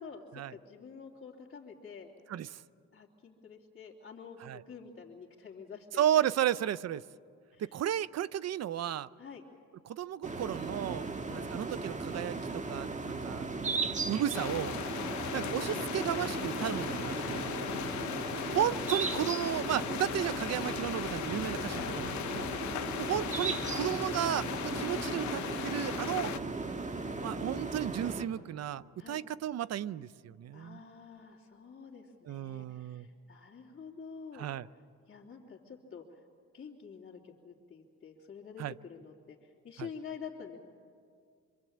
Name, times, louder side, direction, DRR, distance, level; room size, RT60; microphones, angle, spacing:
voice 1, 0.0-2.1 2.9-6.3 7.5-7.8 9.2-9.4 11.2-11.5 17.6-18.2 21.7-22.0 26.9-27.6 29.0-29.2 30.5-34.5 35.1-36.2 36.5-40.6, left 6 dB, 35° left, -6 dB, 3.0 m, -48 dB
voice 2, 2.3-2.6 4.4-4.6 6.0-7.0 7.6-9.1 9.9-14.7 15.3-17.5 18.5-22.5 23.0-26.3 27.2-30.8 32.3-33.1 34.3-34.7 38.6-38.7 39.8-39.9, right 11 dB, 55° right, 18 dB, 0.7 m, -34 dB
sound 1, 10.2-28.2, right 3 dB, 25° right, 1.6 m, -37 dB
sound 2, 14.3-26.4, left 13 dB, 70° left, 0.8 m, -38 dB
26.0 x 25.5 x 8.6 m, 2.2 s
cardioid pair, 90°, 30 cm